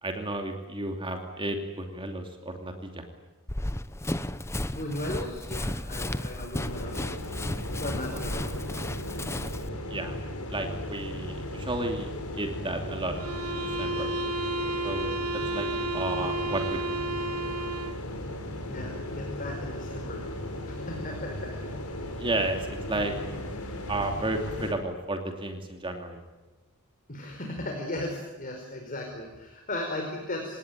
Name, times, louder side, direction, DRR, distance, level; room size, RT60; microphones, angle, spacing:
voice 1, 0.0-3.0 9.9-10.2 10.5-12.1 12.3-13.2 13.4-14.1 14.8-15.7 15.9-17.0 22.2-23.1 23.9-26.2, right 2 dB, 25° right, 4 dB, 2.8 m, -32 dB
Run, 3.5-9.7, left 1 dB, 10° left, 0.9 m, -34 dB
voice 2, 4.7-7.1 7.8-8.6 18.6-20.2 20.6-21.5 27.1-30.6, left 1 dB, 40° left, 2 dB, 4.9 m, -36 dB
sound 1, 6.5-24.7, left 1 dB, 75° left, 5.3 m, -36 dB
sound 2, 13.1-18.1, right 1 dB, 75° right, 1.6 m, -32 dB
28.0 x 18.5 x 9.3 m, 1.2 s
head